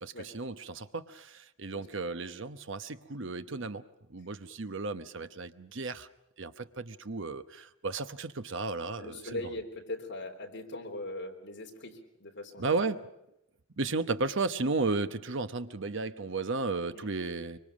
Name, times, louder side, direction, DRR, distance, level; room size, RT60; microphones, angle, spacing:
voice 1, 0.0-3.8 4.1-6.1 6.4-9.4 12.6-13.1 13.8-17.6, right 3 dB, 60° right, 11 dB, 1.0 m, -34 dB
voice 2, 1.7-2.1 9.0-12.8 16.9-17.1, left 2 dB, 60° left, 1 dB, 3.6 m, -41 dB
25.0 x 24.0 x 6.2 m, 0.83 s
head